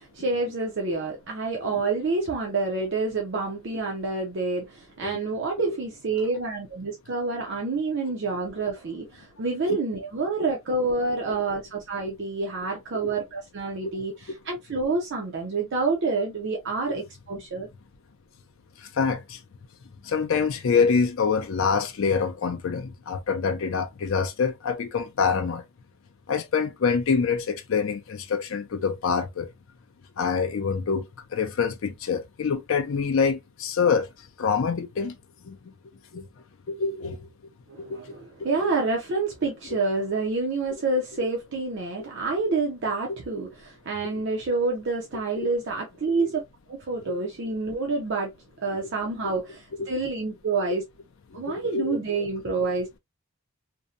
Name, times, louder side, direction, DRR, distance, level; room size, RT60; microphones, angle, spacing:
voice 1, 0.2-17.7 37.7-46.4 46.7-48.3 48.6-50.8 51.3-53.0, right 3 dB, 50° right, 0.5 m, -28 dB
voice 2, 18.8-19.4 20.0-25.6 26.3-29.5 30.2-31.1 31.3-34.1 34.4-35.2 35.4-35.6 36.1-36.2 36.7-37.3 37.9-38.0 38.4-38.7 44.1-44.2 45.4-45.5 46.2-46.3 48.7-48.8 49.8-49.9 51.3-52.0, left 5 dB, 60° left, 0.4 m, -26 dB
2.6 x 2.1 x 2.4 m
head